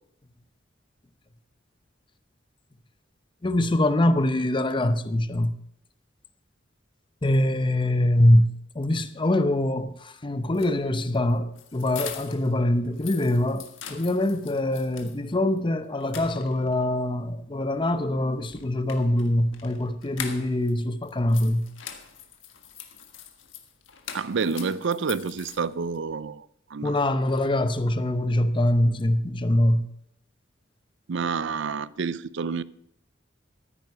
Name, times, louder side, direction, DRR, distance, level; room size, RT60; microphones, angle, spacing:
voice 1, 3.4-5.5 7.2-21.7 26.8-29.9, left 1 dB, 25° left, 0.7 m, -24 dB
sound 1, 10.4-12.5 12.8-15.2 15.6-15.7 16.0-16.8 18.4-20.7 21.0-26.0, left 8 dB, 75° left, 1.6 m, -42 dB
voice 2, 24.1-26.4 26.7-27.0 31.1-32.6, right 5 dB, 65° right, 0.5 m, -28 dB
14.5 x 9.3 x 5.5 m
head